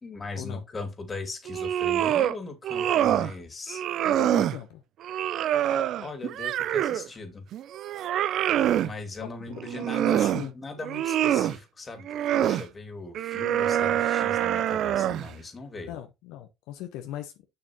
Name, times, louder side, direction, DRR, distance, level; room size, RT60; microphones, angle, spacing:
voice 1, 0.0-3.8 6.0-7.5 8.8-12.1 12.3-15.9, left 3 dB, 25° left, 2.3 m, -39 dB
sound 1, 1.5-2.4 2.6-3.3 3.7-4.6 5.0-7.1 7.5-8.9 9.6-10.5 10.8-11.6 12.1-12.6 13.2-15.3, right 11 dB, 60° right, 0.4 m, -25 dB
voice 2, 4.0-4.8 9.2-10.5 15.9-17.3, left 12 dB, 75° left, 0.9 m, -40 dB
6.8 x 6.3 x 2.9 m
supercardioid pair, 90°, 0 cm